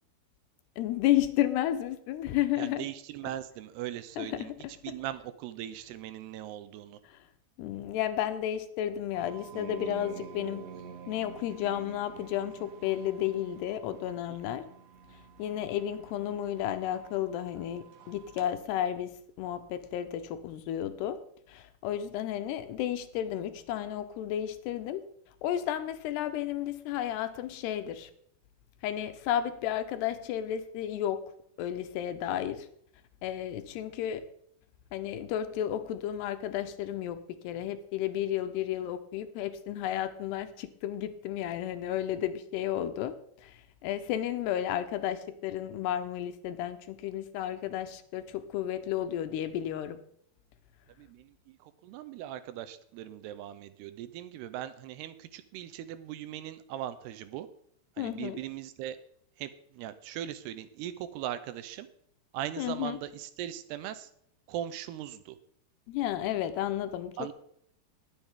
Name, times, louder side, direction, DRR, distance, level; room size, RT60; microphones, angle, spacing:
voice 1, 0.8-2.9 4.2-4.7 7.1-7.2 7.6-10.6 11.1-14.7 15.4-19.1 19.4-21.2 21.5-25.0 25.4-28.1 28.8-31.2 31.6-32.7 33.2-34.3 34.9-50.0 58.0-58.4 62.6-63.0 65.9-67.1, left 11 dB, 85° left, 9 dB, 2.9 m, -32 dB
voice 2, 2.6-4.5 4.8-7.0 51.0-57.5 58.0-59.0 59.4-61.9 62.3-64.1 64.5-65.4 67.2-67.3, right 12 dB, 85° right, 12 dB, 2.7 m, -39 dB
sound 1, 9.1-18.5, right 7 dB, 60° right, 1.8 m, -49 dB
20.5 x 7.3 x 3.6 m, 0.69 s
omnidirectional pair, 4.8 m